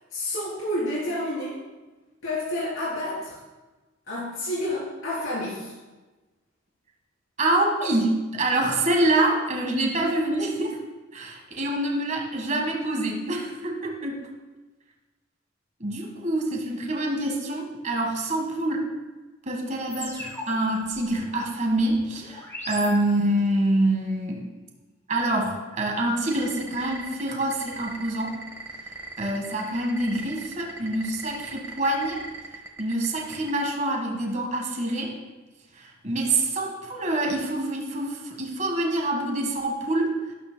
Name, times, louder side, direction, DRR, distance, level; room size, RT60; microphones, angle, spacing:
voice 1, 0.1-1.6 2.2-3.4 4.1-5.7, left 1 dB, 90° left, -8 dB, 3.6 m, -29 dB
voice 2, 7.4-10.8 11.1-14.2 15.8-18.8 19.4-24.5 25.1-28.3 29.2-32.2 32.8-35.1 35.7-40.1, right 1 dB, 40° right, 0 dB, 1.6 m, -26 dB
sound 1, 19.9-23.6, left 1 dB, 15° left, 2.1 m, -41 dB
sound 2, 26.3-33.6, right 3 dB, 15° right, 1.3 m, -38 dB
12.5 x 12.0 x 2.2 m, 1.2 s
head